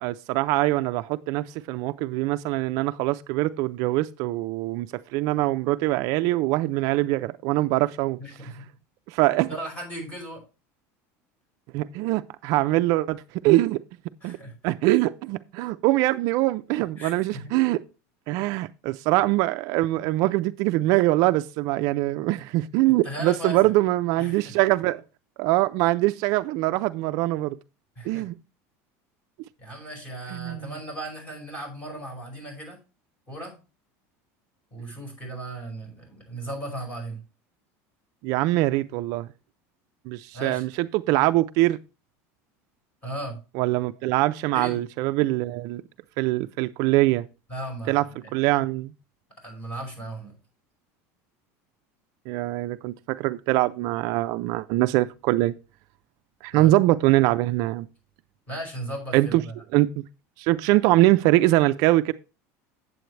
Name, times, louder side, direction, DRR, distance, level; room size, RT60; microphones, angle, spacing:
voice 1, 0.0-8.2 9.1-9.5 11.7-13.8 14.2-14.4 14.6-17.8 18.3-25.0 25.4-27.6 28.0-28.4 30.3-30.7 38.2-39.3 40.1-41.8 43.5-45.8 46.2-47.3 47.9-48.0 48.3-48.9 52.3-55.5 56.4-57.9 59.1-59.4 59.7-60.0 60.4-62.1, right 17 dB, 55° right, 0.4 m, -23 dB
voice 2, 9.5-10.4 14.2-14.5 17.0-17.4 22.8-23.7 24.2-24.5 28.0-28.2 29.6-32.8 33.3-33.6 34.7-37.2 40.3-40.6 43.0-43.4 44.5-44.8 47.5-48.3 49.4-50.3 56.5-56.7 58.5-59.5, right 1 dB, 20° left, 5.4 m, -36 dB
9.1 x 7.6 x 3.2 m
cardioid pair, 160°, 7 cm